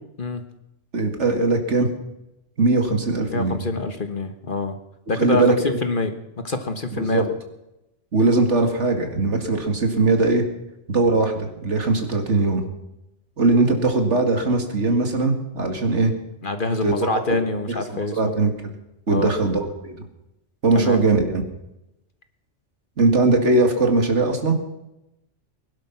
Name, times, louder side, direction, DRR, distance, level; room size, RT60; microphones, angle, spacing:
voice 1, 0.9-1.9 2.6-3.6 5.2-5.8 6.9-7.2 8.1-10.4 10.9-12.6 13.4-16.1 16.8-16.9 17.7-18.7 19.1-20.0 20.6-21.4 23.0-24.5, right 3 dB, 65° right, 5 dB, 2.5 m, -20 dB
voice 2, 3.3-4.8 5.1-6.1 6.4-7.3 16.4-18.3 19.1-19.3 20.7-21.0, left 3 dB, 45° left, 8 dB, 1.5 m, -25 dB
21.0 x 11.5 x 6.0 m, 0.89 s
omnidirectional pair, 1.3 m